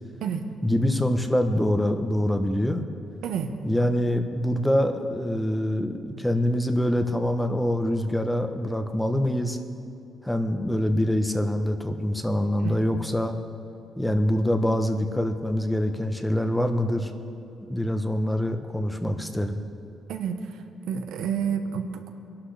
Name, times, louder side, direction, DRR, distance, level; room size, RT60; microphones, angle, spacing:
voice 1, 0.6-2.9 3.6-9.6 10.2-13.3 14.0-17.1 17.7-19.6, left 1 dB, 5° left, 6 dB, 1.0 m, -25 dB
voice 2, 20.1-22.1, right 7 dB, 85° right, 6 dB, 1.1 m, -30 dB
22.0 x 11.5 x 3.4 m, 2.7 s
cardioid pair, 90°, 0 cm